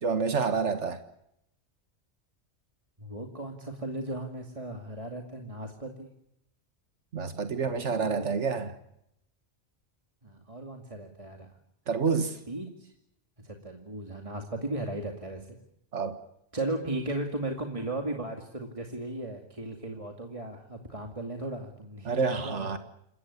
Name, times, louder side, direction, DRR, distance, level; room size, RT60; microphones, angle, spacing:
voice 1, 0.0-1.0 7.1-8.7 11.9-12.4 15.9-16.2 22.1-22.8, right 5 dB, 90° right, 1.9 m, -28 dB
voice 2, 3.0-6.1 7.6-8.3 10.2-11.5 12.5-12.9 13.4-15.6 16.5-22.8, right 2 dB, 30° right, 2.5 m, -36 dB
28.5 x 15.5 x 9.8 m
omnidirectional pair, 1.2 m